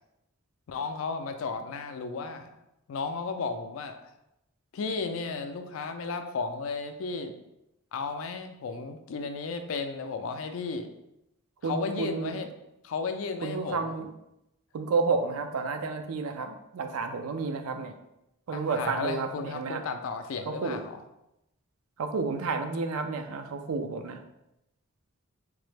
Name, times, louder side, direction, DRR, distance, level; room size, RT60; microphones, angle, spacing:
voice 1, 0.7-2.5 2.9-4.1 4.7-7.4 7.9-10.9 11.6-12.5 12.8-14.0 18.5-21.0, left 4 dB, 70° left, 7 dB, 0.3 m, -34 dB
voice 2, 11.6-12.4 13.4-14.1 14.7-17.9 18.5-19.8 20.5-20.8 22.0-24.2, right 4 dB, 80° right, 7 dB, 0.4 m, -31 dB
3.2 x 2.0 x 3.2 m, 0.87 s
head